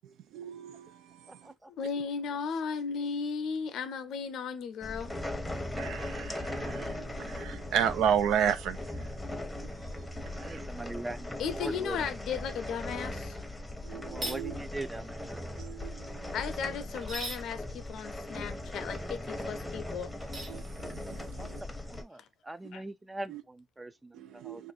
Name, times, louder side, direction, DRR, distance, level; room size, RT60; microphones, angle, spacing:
voice 1, 0.0-1.1 5.8-9.2 9.5-10.6 13.8-14.6 15.6-16.3 20.5-21.6 23.3-23.4 24.1-24.7, right 8 dB, 85° right, 0.4 m, -34 dB
voice 2, 1.8-5.1 11.4-13.4 16.3-20.1 22.2-22.3 22.7-22.8, left 6 dB, 75° left, 0.5 m, -35 dB
sound 1, 4.8-22.0, left 1 dB, 5° left, 0.8 m, -39 dB
voice 3, 10.4-12.0 14.1-15.3 21.4-21.5 21.9-24.7, right 2 dB, 15° right, 0.4 m, -41 dB
sound 2, 14.1-14.4 16.9-17.4 20.2-20.6, right 2 dB, 60° right, 1.2 m, -38 dB
2.5 x 2.5 x 3.9 m
cardioid pair, 90°, 0 cm